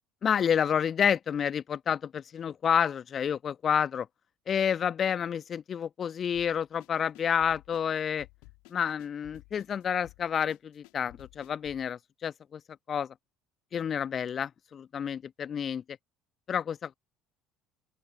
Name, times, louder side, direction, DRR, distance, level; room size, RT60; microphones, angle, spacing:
voice 1, 0.2-4.1 4.5-8.3 8.7-12.6 12.9-13.1 13.7-15.8 16.5-16.9, left 8 dB, 35° left, 1.2 m, -29 dB
sound 1, 6.3-11.9, left 31 dB, 60° left, 2.9 m, -55 dB
open air
figure-of-eight pair, 60°, 0 cm